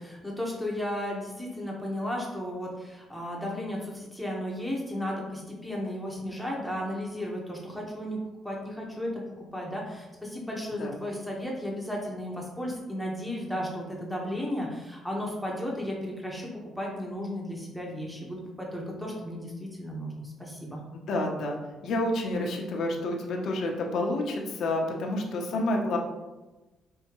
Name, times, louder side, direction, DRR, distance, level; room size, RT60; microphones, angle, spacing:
voice 1, 0.0-9.2 9.5-16.5 16.8-20.8, equal, ahead, -3 dB, 1.0 m, -34 dB
voice 2, 21.1-21.6 21.8-26.0, left 1 dB, 70° left, 1 dB, 0.8 m, -29 dB
5.4 x 2.8 x 3.0 m, 1.1 s
cardioid pair, 90°, 0 cm